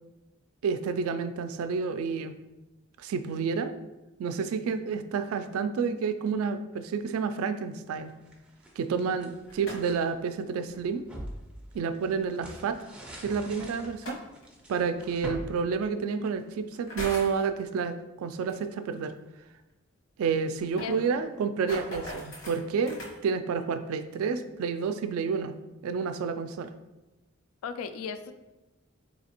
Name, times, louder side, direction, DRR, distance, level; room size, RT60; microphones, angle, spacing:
voice 1, 0.6-2.3 3.0-3.7 4.2-8.1 8.8-11.0 11.7-12.8 13.2-14.2 14.7-19.1 20.2-25.6 25.8-26.7, right 5 dB, 85° right, 9 dB, 0.3 m, -30 dB
sound 1, 8.0-10.0 10.5-16.6, right 1 dB, 5° right, 0.3 m, -44 dB
sound 2, 9.4-10.1 11.7-11.8 13.8-14.4 15.6-15.7 16.7-17.4 18.5-18.6 19.0-19.1 19.4-19.5 19.7-19.8 20.3-23.2, left 1 dB, 70° left, 1.1 m, -41 dB
voice 2, 27.6-28.3, left 6 dB, 90° left, 11 dB, 0.3 m, -36 dB
4.0 x 2.8 x 2.9 m, 1.0 s
head